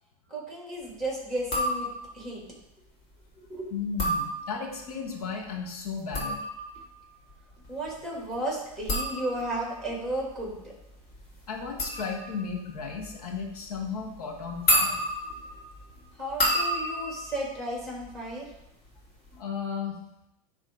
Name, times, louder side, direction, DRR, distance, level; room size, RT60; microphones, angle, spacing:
voice 1, 0.3-1.9 2.1-2.4 3.3-3.7 7.7-10.7 16.1-18.4, right 1 dB, ahead, -3 dB, 3.0 m, -34 dB
sound 1, 1.4-2.3 3.8-4.9 5.9-18.6 18.9-19.4, equal, 35° left, 2.9 m, -32 dB
voice 2, 3.7-6.4 11.5-15.0 19.4-20.0, left 5 dB, 85° left, 2 dB, 1.7 m, -34 dB
10.0 x 3.6 x 3.9 m, 0.84 s
supercardioid pair, 125°, 19 cm